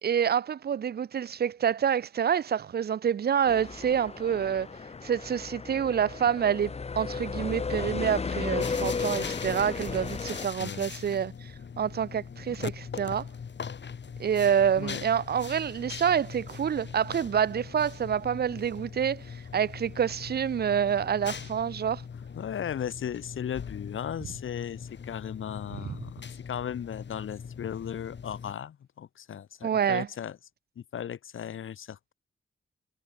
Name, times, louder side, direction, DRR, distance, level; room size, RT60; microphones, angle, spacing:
voice 1, 0.0-4.7 5.0-13.3 14.2-22.0 25.9-26.0 29.6-30.1, right 8 dB, 50° right, 0.5 m, -27 dB
sound 1, 3.5-10.5, left 4 dB, 30° left, 0.7 m, -34 dB
sound 2, 8.6-28.5, left 6 dB, 65° left, 4.3 m, -41 dB
voice 2, 10.6-10.9 14.8-15.1 22.4-30.4 30.8-32.1, left 9 dB, 80° left, 1.2 m, -36 dB
wide cardioid pair, 95°, 20 cm